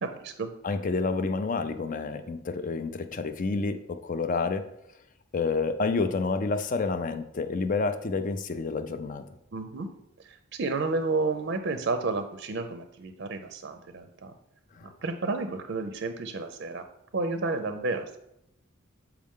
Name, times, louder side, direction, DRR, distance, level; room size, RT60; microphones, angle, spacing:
voice 1, 0.0-0.5 9.5-9.9 10.2-14.3 14.8-16.8 17.1-18.2, right 3 dB, 55° right, 8 dB, 0.5 m, -31 dB
voice 2, 0.6-4.7 5.3-9.3 14.7-14.9, left 4 dB, 40° left, 10 dB, 0.4 m, -29 dB
7.5 x 4.7 x 3.6 m, 0.82 s
head